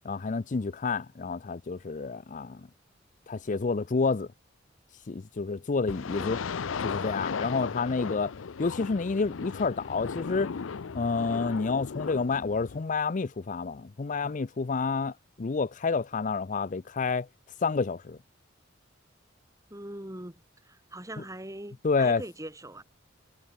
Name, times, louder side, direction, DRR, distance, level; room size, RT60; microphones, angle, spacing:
voice 1, 0.0-2.6 3.3-4.3 5.1-6.4 6.8-8.3 8.6-10.5 10.9-17.3 17.6-18.2 21.8-22.2, left 4 dB, 40° left, 0.5 m, -29 dB
sound 1, 5.9-12.8, left 5 dB, 85° left, 0.6 m, -36 dB
voice 2, 19.7-22.8, right 1 dB, 15° right, 4.2 m, -42 dB
head